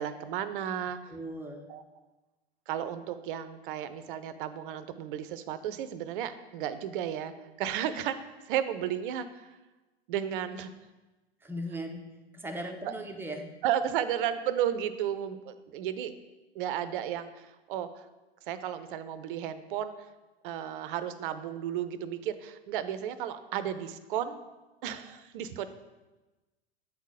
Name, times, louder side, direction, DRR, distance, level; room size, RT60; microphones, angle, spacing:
voice 1, 0.0-1.0 1.7-1.8 2.7-7.3 7.6-8.2 8.5-9.5 10.1-10.7 12.8-12.9 13.6-16.2 16.5-18.1 18.5-19.9 20.4-24.4 24.8-25.7, right 10 dB, 55° right, 12 dB, 0.6 m, -33 dB
voice 2, 1.1-1.7 11.4-13.5, equal, 5° right, 3 dB, 0.7 m, -38 dB
8.0 x 3.7 x 4.9 m, 1.1 s
hypercardioid pair, 95°, 32 cm